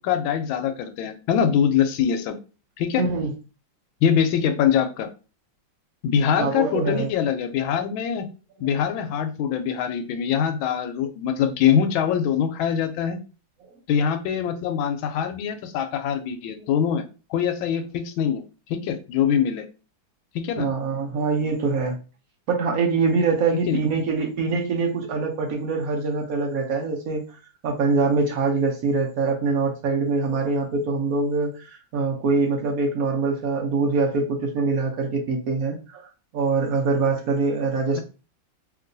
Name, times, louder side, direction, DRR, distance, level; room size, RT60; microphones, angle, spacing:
voice 1, 0.0-2.4 2.8-3.0 4.0-5.1 6.0-8.3 8.6-13.2 13.9-17.0 17.3-18.4 18.7-19.6 20.3-20.7 23.5-23.8, left 8 dB, 85° left, 7 dB, 1.4 m, -23 dB
voice 2, 3.0-3.3 6.4-7.1 20.6-22.0 22.5-27.2 27.6-36.1 36.3-38.0, right 4 dB, 65° right, 1 dB, 0.9 m, -24 dB
2.9 x 2.9 x 2.6 m, 0.33 s
omnidirectional pair, 2.1 m